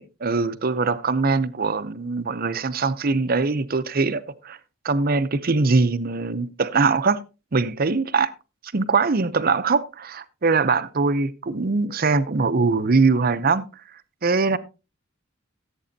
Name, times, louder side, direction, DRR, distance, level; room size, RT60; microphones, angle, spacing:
voice 1, 0.2-4.6 4.8-7.2 7.5-8.3 8.7-13.7 14.2-14.6, right 4 dB, 45° right, 0.7 m, -22 dB
16.5 x 8.2 x 2.7 m
head